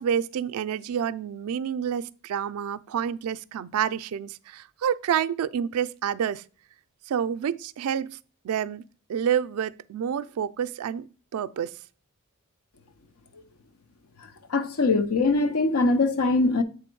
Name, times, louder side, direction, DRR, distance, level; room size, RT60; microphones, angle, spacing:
voice 1, 0.0-6.4 7.1-8.2 8.4-8.8 9.1-11.1 11.3-11.8, right 8 dB, 80° right, 0.3 m, -28 dB
voice 2, 14.5-16.6, left 3 dB, 80° left, 0.6 m, -22 dB
7.6 x 3.4 x 4.5 m
head